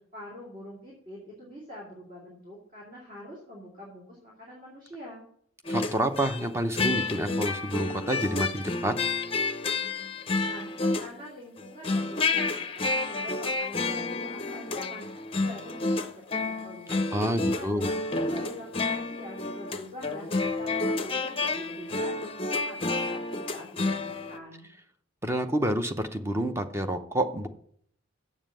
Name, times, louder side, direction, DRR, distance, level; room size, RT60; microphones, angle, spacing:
voice 1, 0.0-5.2 10.4-17.1 17.5-18.0 18.3-24.7, equal, 40° right, -4 dB, 2.6 m, -45 dB
sound 1, 5.6-6.4 6.8-11.3 11.6-24.4, left 3 dB, 25° left, 0.6 m, -30 dB
voice 2, 5.7-8.9 17.1-17.9 25.2-27.5, right 1 dB, 10° right, 7 dB, 0.7 m, -28 dB
7.4 x 7.3 x 7.5 m, 0.65 s
head